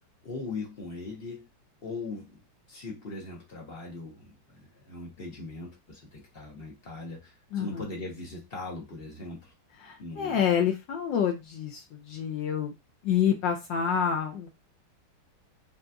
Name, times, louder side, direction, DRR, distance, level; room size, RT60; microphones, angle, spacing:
voice 1, 0.2-1.5 1.8-2.4 2.7-9.5 10.0-10.4, left 3 dB, 50° left, -2 dB, 0.6 m, -40 dB
voice 2, 7.5-7.9 9.8-12.7 13.0-14.5, left 8 dB, 75° left, 2 dB, 1.1 m, -28 dB
3.9 x 2.5 x 2.2 m, 0.22 s
omnidirectional pair, 2.4 m